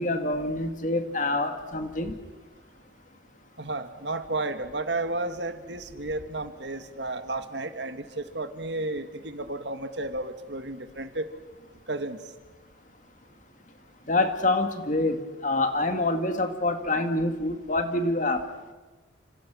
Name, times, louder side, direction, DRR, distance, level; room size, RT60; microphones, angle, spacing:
voice 1, 0.0-2.1 14.1-18.4, left 2 dB, 40° left, 7 dB, 2.1 m, -26 dB
voice 2, 3.6-11.3 11.9-12.2, right 2 dB, 65° right, 9 dB, 1.8 m, -32 dB
30.0 x 26.5 x 6.3 m, 1.2 s
head